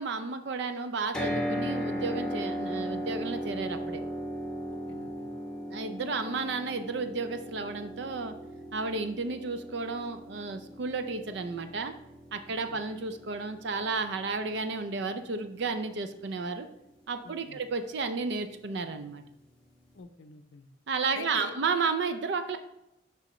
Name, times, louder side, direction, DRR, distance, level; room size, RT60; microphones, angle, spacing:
voice 1, 0.0-4.0 5.7-8.3 8.7-11.9 12.3-16.7 17.1-19.2 20.9-22.6, right 4 dB, 60° right, 8 dB, 0.4 m, -32 dB
sound 1, 1.1-15.3, equal, 5° left, 1.0 m, -37 dB
voice 2, 4.9-5.3 12.7-12.8 17.2-17.6 19.9-20.7 21.1-21.5, left 4 dB, 65° left, 8 dB, 0.5 m, -46 dB
7.6 x 5.5 x 3.1 m, 0.88 s
head